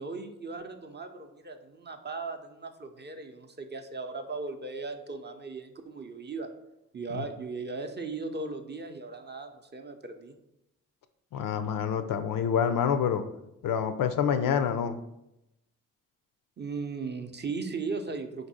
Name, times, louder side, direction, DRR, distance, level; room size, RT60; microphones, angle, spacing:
voice 1, 0.0-6.5 6.9-10.4 16.6-18.5, right 4 dB, 30° right, 5 dB, 0.6 m, -37 dB
voice 2, 11.3-13.2 13.6-15.0, left 8 dB, 60° left, 10 dB, 0.5 m, -27 dB
4.2 x 2.6 x 4.1 m, 0.88 s
supercardioid pair, 45°, 37 cm